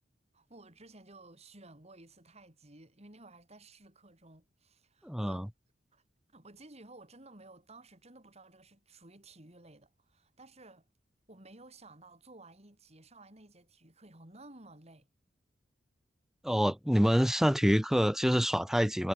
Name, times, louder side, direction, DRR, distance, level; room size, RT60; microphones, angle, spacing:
voice 1, 0.3-5.5 5.9-6.0 6.3-10.9 11.3-15.1, right 2 dB, 35° right, 4.9 m, -55 dB
voice 2, 5.0-5.5 16.4-19.1, equal, ahead, 0.9 m, -26 dB
head